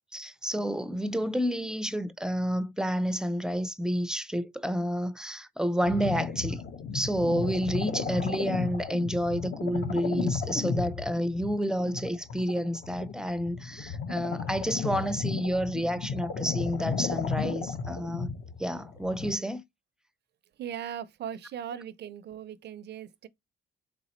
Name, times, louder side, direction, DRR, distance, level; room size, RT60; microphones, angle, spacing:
voice 1, 0.1-6.6 6.9-18.3 18.6-19.6, equal, 5° right, 0.5 m, -30 dB
sound 1, 5.8-19.3, left 5 dB, 55° left, 0.9 m, -34 dB
voice 2, 20.6-23.3, right 9 dB, 60° right, 0.5 m, -39 dB
4.0 x 3.4 x 2.9 m
cardioid pair, 90°, 20 cm